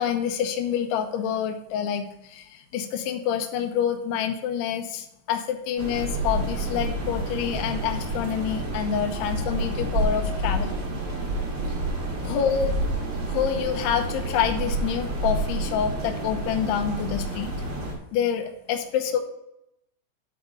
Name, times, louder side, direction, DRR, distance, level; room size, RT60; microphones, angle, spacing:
voice 1, 0.0-10.7 12.2-12.7 13.3-17.5 18.1-19.2, left 8 dB, 85° left, 3 dB, 2.4 m, -27 dB
sound 1, 5.8-17.9, right 1 dB, 50° right, 1.6 m, -29 dB
11.0 x 4.8 x 5.3 m, 0.81 s
omnidirectional pair, 6.0 m